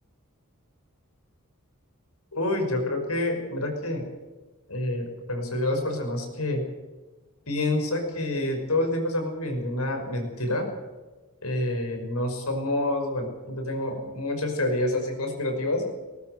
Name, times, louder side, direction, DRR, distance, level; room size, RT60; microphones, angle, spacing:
voice 1, 2.3-4.0 4.7-6.6 7.5-10.7 11.4-15.8, left 1 dB, 80° left, 4 dB, 5.8 m, -28 dB
19.5 x 18.5 x 8.0 m, 1.2 s
head